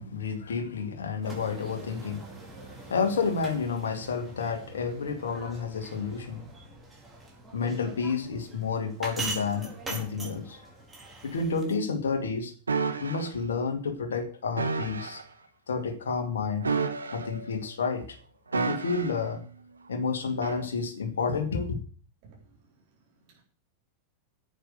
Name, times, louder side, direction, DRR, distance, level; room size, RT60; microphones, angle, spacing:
voice 1, 0.0-2.2 2.9-6.4 7.5-10.6 11.2-12.5 13.0-15.2 15.7-16.7 17.1-18.2 18.5-19.4 19.9-21.8, left 5 dB, 65° left, 2.3 m, -30 dB
sound 1, 1.2-11.8, right 3 dB, 15° right, 4.7 m, -42 dB
sound 2, 12.7-13.3 14.6-15.2 16.6-17.5 18.5-19.3 20.4-20.6, right 4 dB, 75° right, 1.5 m, -30 dB
voice 2, 22.2-23.4, right 4 dB, 45° right, 4.4 m, -58 dB
10.0 x 8.6 x 8.1 m
figure-of-eight pair, 90°, 0 cm